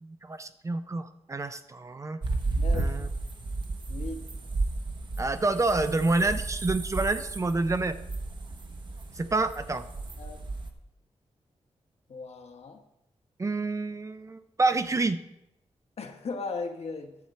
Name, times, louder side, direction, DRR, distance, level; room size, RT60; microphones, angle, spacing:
voice 1, 0.0-2.2 2.7-3.1 5.2-8.0 9.2-9.8 13.4-15.2, right 3 dB, 25° right, 10 dB, 0.5 m, -28 dB
sound 1, 2.2-10.7, right 3 dB, 45° right, 1.0 m, -33 dB
voice 2, 2.6-3.1 3.9-4.2 10.2-10.4 12.1-12.8 16.0-17.2, left 4 dB, 65° left, 4 dB, 1.2 m, -37 dB
11.5 x 4.4 x 7.5 m, 0.84 s
wide cardioid pair, 155°, 12 cm